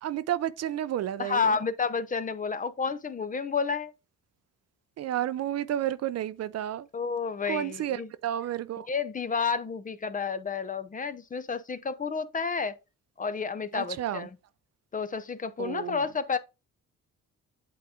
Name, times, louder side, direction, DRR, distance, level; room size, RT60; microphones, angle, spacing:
voice 1, 0.0-1.6 5.0-6.9 7.5-8.9 13.7-14.3 15.6-16.0, right 11 dB, 55° right, 0.5 m, -31 dB
voice 2, 1.2-3.9 6.9-8.1 8.9-12.7 13.2-14.3 14.9-16.4, left 5 dB, 25° left, 0.6 m, -30 dB
8.5 x 3.7 x 3.6 m
cardioid pair, 90°, 30 cm